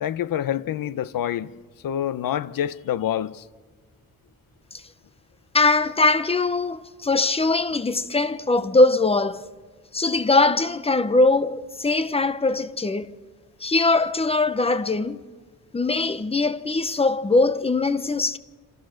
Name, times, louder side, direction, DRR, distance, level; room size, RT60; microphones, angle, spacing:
voice 1, 0.0-1.5 1.8-3.4, left 10 dB, 80° left, 0.9 m, -27 dB
voice 2, 5.5-9.4 9.9-13.2 13.6-15.2 15.7-18.4, left 3 dB, 15° left, 0.8 m, -21 dB
27.5 x 26.5 x 6.5 m
wide cardioid pair, 175°, 33 cm